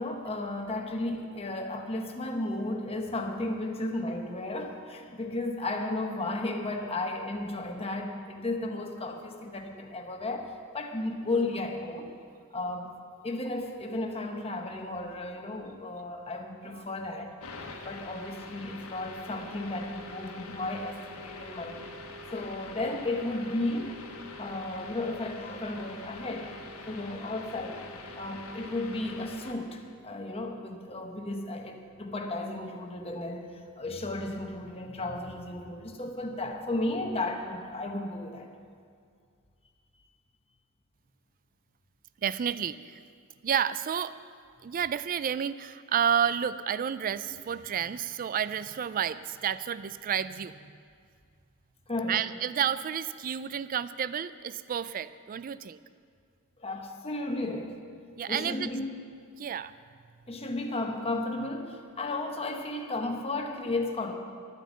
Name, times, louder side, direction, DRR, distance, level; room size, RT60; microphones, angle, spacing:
voice 1, 0.0-12.1 12.5-12.9 13.2-17.3 17.8-21.9 22.3-24.0 24.4-26.5 26.9-27.8 28.2-38.5 51.9-52.3 56.6-57.8 58.3-59.0 60.3-64.1, left 2 dB, 25° left, 2 dB, 1.1 m, -34 dB
sound 1, 17.4-29.5, left 2 dB, 70° left, 1.3 m, -44 dB
voice 2, 42.2-43.0 43.4-44.2 44.6-50.6 52.1-55.8 58.2-58.7 59.4-59.7, right 8 dB, 40° right, 15 dB, 0.3 m, -30 dB
11.5 x 9.2 x 7.3 m, 2.2 s
head